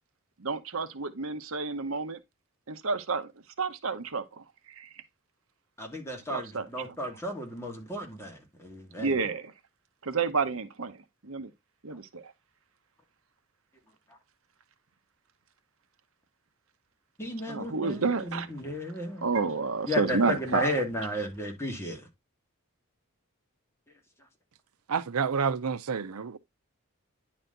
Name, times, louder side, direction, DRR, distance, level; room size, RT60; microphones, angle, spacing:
voice 1, 0.4-2.2 2.7-3.3 3.6-4.4 4.8-4.9 6.3-7.1 9.0-9.5 10.0-11.0 11.3-11.5 11.8-12.3 17.5-18.5 19.2-20.7, right 4 dB, 65° right, 1.0 m, -30 dB
voice 2, 5.8-9.2 17.2-19.3 19.8-22.0, left 1 dB, 10° left, 2.3 m, -34 dB
voice 3, 24.9-26.4, right 6 dB, 90° right, 0.6 m, -29 dB
10.0 x 4.2 x 3.9 m
head